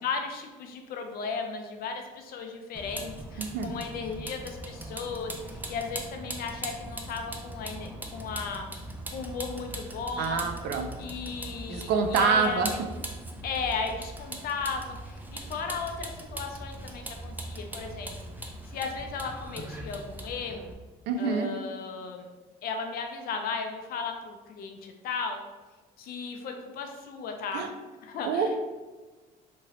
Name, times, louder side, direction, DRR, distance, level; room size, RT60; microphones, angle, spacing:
voice 1, 0.0-8.7 9.1-10.5 11.0-12.8 13.4-18.1 18.7-20.7 21.2-22.3 22.6-25.4 26.0-27.6 28.0-28.5, left 5 dB, 60° left, 4 dB, 0.5 m, -35 dB
Vehicle, 2.7-20.7, right 1 dB, 10° right, 0.4 m, -40 dB
voice 2, 3.4-3.7 10.2-10.9 11.7-12.7 21.1-21.5 27.5-27.7 28.2-28.7, right 5 dB, 80° right, 6 dB, 0.4 m, -26 dB
2.9 x 2.7 x 2.9 m, 1.2 s
cardioid pair, 110°, 17 cm